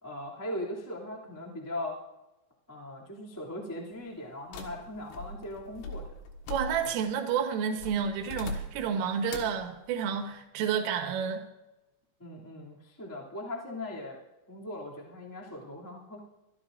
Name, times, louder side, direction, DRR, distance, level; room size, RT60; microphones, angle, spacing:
voice 1, 0.0-2.0 2.7-6.1 12.2-14.2 14.5-16.2, left 1 dB, 10° left, -3 dB, 0.9 m, -39 dB
sound 1, 4.5-7.1 7.8-8.9 9.3-9.6, left 2 dB, 85° left, 4.1 m, -40 dB
voice 2, 6.5-11.4, right 7 dB, 85° right, 5 dB, 3.8 m, -30 dB
24.5 x 13.5 x 2.6 m, 1.0 s
omnidirectional pair, 5.7 m